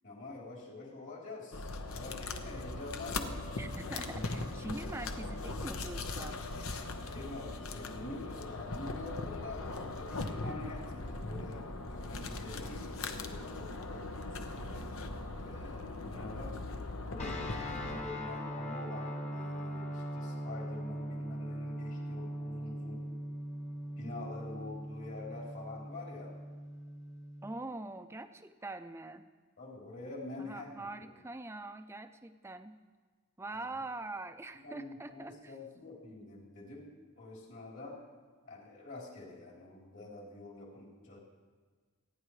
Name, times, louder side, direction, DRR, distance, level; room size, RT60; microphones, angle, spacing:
voice 1, 0.0-3.4 7.1-14.9 15.4-23.1 23.9-26.4 29.6-31.1 33.5-33.7 34.6-36.9 37.2-38.0 38.4-41.2, left 2 dB, 60° left, -3 dB, 3.5 m, -46 dB
sound 1, 1.5-18.0, left 2 dB, 80° left, 1.0 m, -40 dB
voice 2, 3.6-6.4 27.4-29.2 30.4-32.8 33.4-35.5, right 2 dB, 10° right, 9 dB, 0.5 m, -43 dB
sound 2, 17.2-27.5, equal, 30° left, 1.2 m, -40 dB
27.5 x 10.0 x 3.2 m, 1.5 s
head